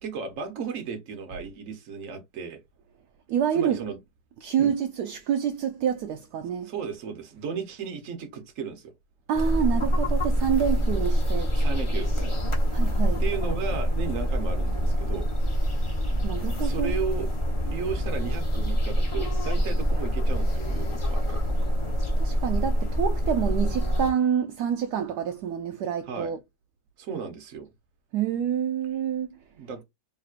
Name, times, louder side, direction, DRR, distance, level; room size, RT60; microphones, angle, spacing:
voice 1, 0.0-2.6 3.5-4.0 4.6-4.7 6.6-8.9 11.5-12.4 13.2-15.3 16.6-17.3 17.6-21.4 26.1-26.3 27.0-27.7 29.5-29.8, right 6 dB, 55° right, 1.2 m, -35 dB
voice 2, 3.3-3.9 4.4-6.7 9.3-11.5 12.7-13.2 16.2-17.1 22.2-26.4 28.1-29.4, right 8 dB, 75° right, 1.1 m, -27 dB
sound 1, 9.3-24.1, equal, 30° left, 0.5 m, -25 dB
4.3 x 3.3 x 2.4 m
omnidirectional pair, 1.9 m